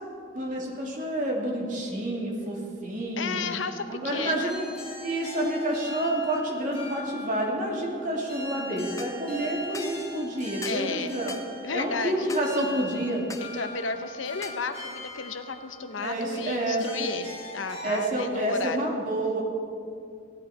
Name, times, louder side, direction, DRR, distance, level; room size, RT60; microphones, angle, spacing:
voice 1, 0.3-3.4 3.9-4.7 5.0-11.3 11.7-13.2 16.0-16.9 17.8-19.4, right 1 dB, 45° right, -2 dB, 2.5 m, -29 dB
voice 2, 3.2-4.5 10.6-11.1 11.6-12.3 13.4-18.9, left 4 dB, 85° left, 9 dB, 0.9 m, -33 dB
sound 1, 4.5-18.1, left 1 dB, 35° left, 3.8 m, -42 dB
sound 2, 9.0-9.2 9.7-10.0 10.6-10.9 11.3-11.5 12.3-12.5 13.3-13.5 14.4-14.6, left 4 dB, 15° left, 0.6 m, -40 dB
16.0 x 12.0 x 4.8 m, 2.3 s
head